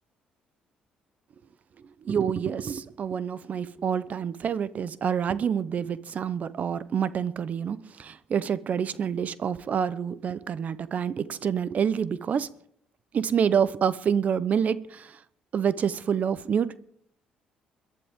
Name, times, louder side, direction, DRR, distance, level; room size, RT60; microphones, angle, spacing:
voice 1, 2.0-12.5 13.1-15.2 15.5-16.8, right 7 dB, 50° right, 16 dB, 0.9 m, -27 dB
22.5 x 11.5 x 3.7 m, 0.67 s
supercardioid pair, 75°, 3 cm